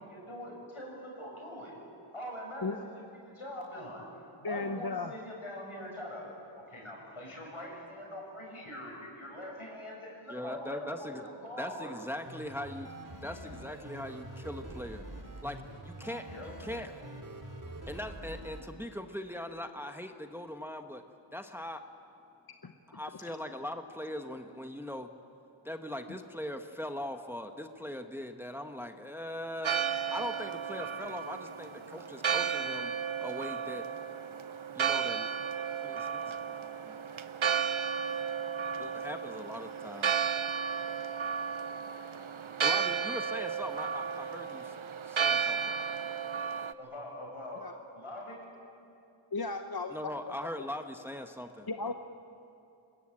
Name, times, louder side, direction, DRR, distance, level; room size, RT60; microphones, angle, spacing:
voice 1, 0.0-1.8 2.1-4.1 4.4-6.3 6.5-12.0 16.2-16.5 31.3-31.5 46.8-47.7 47.9-48.4, left 1 dB, 80° left, -1 dB, 7.3 m, -43 dB
voice 2, 4.4-5.1 22.6-22.7 47.6-47.7 49.3-50.1 51.7-51.9, left 3 dB, 45° left, 6 dB, 0.9 m, -35 dB
voice 3, 10.3-11.2 11.6-15.0 15.4-15.6 15.8-16.2 16.6-16.9 17.9-21.0 21.3-21.8 22.9-25.1 25.6-33.8 34.7-35.3 35.8-36.4 36.8-37.0 38.8-40.1 42.6-44.7 45.1-45.8 49.9-51.9, left 1 dB, 5° right, 6 dB, 1.2 m, -40 dB
sound 1, 12.3-18.6, right 1 dB, 40° right, 2.7 m, -45 dB
Church bell, 29.6-46.7, right 7 dB, 70° right, 0.8 m, -33 dB
25.5 x 21.0 x 8.8 m, 2.7 s
wide cardioid pair, 50°, 50 cm